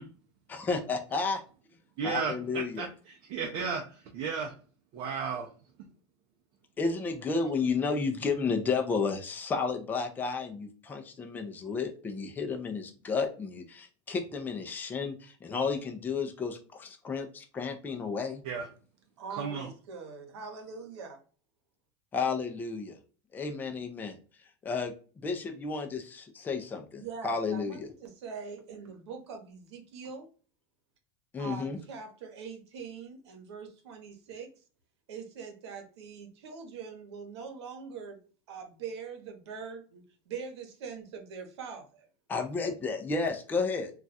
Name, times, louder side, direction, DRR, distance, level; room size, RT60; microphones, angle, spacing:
voice 1, 0.5-1.4 2.0-2.9 6.8-18.4 22.1-23.0 23.3-24.2 24.6-24.9 25.2-27.9 31.3-31.8 42.3-43.9, left 4 dB, 15° left, 4 dB, 0.4 m, -32 dB
voice 2, 2.0-3.8 4.1-4.5 4.9-5.5 18.4-18.7 19.3-19.7, right 5 dB, 50° right, 2 dB, 0.6 m, -34 dB
voice 3, 19.2-21.2 27.0-30.3 31.4-34.5 35.1-38.2 38.5-42.1, right 5 dB, 85° right, 5 dB, 0.9 m, -43 dB
2.3 x 2.3 x 4.0 m, 0.38 s
supercardioid pair, 140°, 14 cm